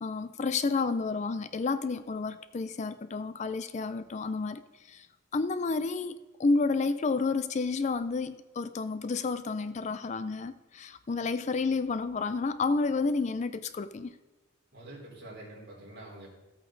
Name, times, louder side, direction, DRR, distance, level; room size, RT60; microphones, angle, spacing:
voice 1, 0.0-4.6 4.9-5.0 5.3-6.1 6.4-14.1, left 4 dB, 35° left, 0.4 m, -30 dB
voice 2, 14.7-16.3, right 1 dB, 55° right, 3.8 m, -46 dB
14.0 x 8.5 x 3.9 m
head